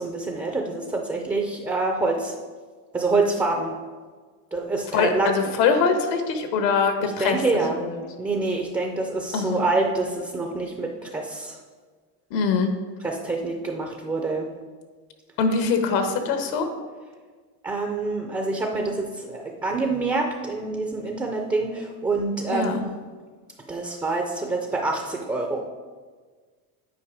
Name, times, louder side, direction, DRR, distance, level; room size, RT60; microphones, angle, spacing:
voice 1, 0.0-2.3 2.9-3.7 4.5-5.3 7.0-7.8 8.2-11.6 13.0-14.5 17.6-22.8 23.7-25.6, right 3 dB, 10° right, 2 dB, 0.4 m, -26 dB
voice 2, 4.9-7.4 7.8-8.0 9.3-9.6 12.3-12.7 15.4-16.7 22.5-22.8, left 5 dB, 85° left, 6 dB, 1.3 m, -23 dB
8.7 x 4.8 x 4.7 m, 1.5 s
supercardioid pair, 130°, 49 cm